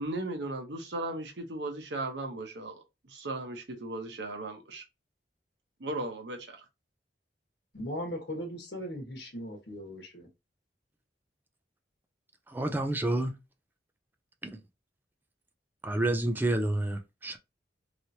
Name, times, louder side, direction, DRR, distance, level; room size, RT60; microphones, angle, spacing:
voice 1, 0.0-4.8 5.8-6.6, right 2 dB, 80° right, 0.9 m, -37 dB
voice 2, 7.7-10.3, equal, 65° left, 1.2 m, -38 dB
voice 3, 12.5-13.3 15.8-17.4, right 1 dB, 10° right, 0.4 m, -29 dB
3.1 x 2.9 x 2.7 m
head